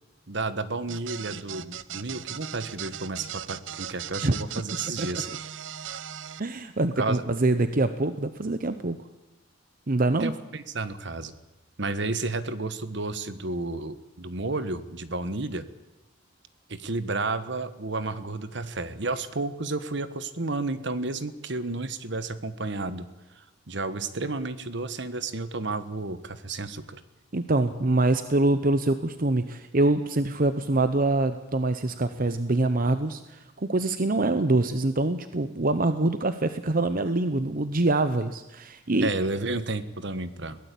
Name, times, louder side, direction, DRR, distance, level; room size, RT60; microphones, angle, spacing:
voice 1, 0.3-5.3 7.0-7.2 10.2-11.3 11.8-15.6 16.7-23.0 23.4-27.0 39.0-40.6, right 3 dB, 65° right, 12 dB, 1.4 m, -31 dB
sound 1, 0.9-6.4, right 10 dB, 80° right, 0.8 m, -38 dB
voice 2, 6.4-9.0 9.9-10.3 27.3-39.1, right 2 dB, 50° right, 10 dB, 0.9 m, -25 dB
22.0 x 17.0 x 8.5 m, 0.99 s
head